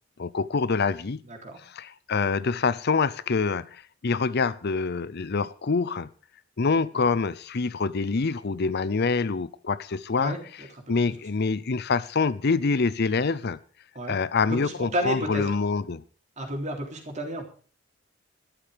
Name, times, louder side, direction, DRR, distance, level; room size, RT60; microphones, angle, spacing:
voice 1, 0.2-1.2 1.6-6.1 6.6-10.3 10.9-13.6 14.1-16.0, left 4 dB, 55° left, 0.6 m, -26 dB
voice 2, 1.3-1.6 6.9-7.1 10.2-11.1 14.0-14.2 14.5-15.6 16.4-17.4, right 1 dB, 35° right, 3.6 m, -32 dB
13.0 x 12.5 x 5.1 m
head